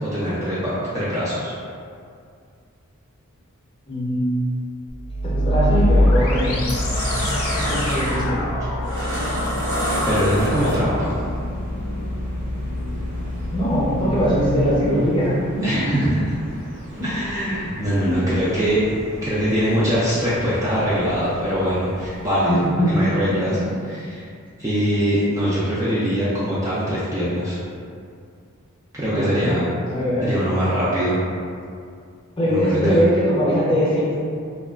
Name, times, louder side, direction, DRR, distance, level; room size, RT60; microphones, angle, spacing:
voice 1, 0.0-1.5 10.0-11.2 15.6-16.2 17.0-18.9 19.2-24.3 24.6-27.6 28.9-29.6 30.3-31.2 32.5-33.0, equal, 15° right, -10 dB, 0.3 m, -22 dB
voice 2, 3.9-4.3 5.2-6.7 7.6-8.4 13.5-15.8 17.0-17.1 18.0-18.2 22.5-23.1 29.1-29.6 29.9-30.3 32.4-34.1, equal, 20° left, -8 dB, 0.6 m, -21 dB
sound 1, 4.9-14.9, left 1 dB, 75° left, 0.4 m, -24 dB
sound 2, 5.7-6.0 6.4-11.1, equal, 85° right, 0.8 m, -27 dB
sound 3, 10.0-22.7, right 1 dB, 55° right, 0.7 m, -39 dB
2.8 x 2.3 x 2.3 m, 2.3 s
head